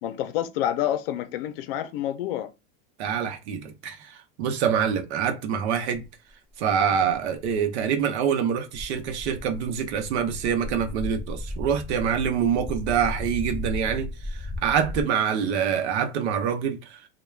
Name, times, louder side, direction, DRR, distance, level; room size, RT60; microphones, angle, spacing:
voice 1, 0.0-2.5, left 11 dB, 60° left, 0.5 m, -28 dB
voice 2, 3.0-6.0 6.6-17.0, right 7 dB, 90° right, 0.7 m, -26 dB
sound 1, 6.0-6.1 6.9-7.5 8.7-15.0, left 1 dB, 15° right, 0.5 m, -35 dB
2.3 x 2.2 x 3.2 m
supercardioid pair, 175°, 32 cm